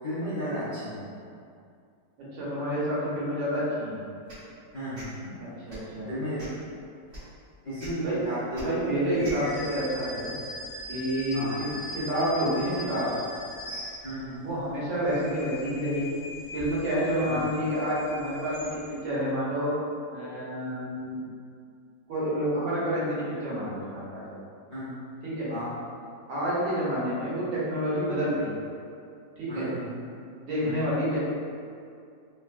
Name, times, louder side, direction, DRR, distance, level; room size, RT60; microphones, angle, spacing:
voice 1, 0.0-1.1 4.7-5.3 6.1-6.4 7.6-9.5 9.8-9.9 11.3-11.7 14.0-14.4 17.2-17.5 24.7-24.9 25.5-25.7 29.5-30.0 30.6-30.9, equal, 45° left, -15 dB, 0.6 m, -34 dB
voice 2, 2.3-4.0 5.4-6.1 8.0-8.2 8.5-10.3 10.9-11.7 11.9-13.1 14.4-16.2 16.5-19.7 20.1-21.2 22.1-24.2 25.2-25.5 26.3-28.6 29.4-29.7 30.4-31.2, equal, 85° right, -9 dB, 1.6 m, -29 dB
sound 1, 4.3-4.5 4.9-5.1 5.6-5.9 6.4-6.6 7.1-7.2 7.8-7.9 8.5-8.6 9.2-9.4, equal, 35° right, 1.0 m, -42 dB
sound 2, 9.1-14.4 14.9-19.1, left 1 dB, 60° left, 1.5 m, -40 dB
3.6 x 2.3 x 2.4 m, 2.4 s
omnidirectional pair, 2.0 m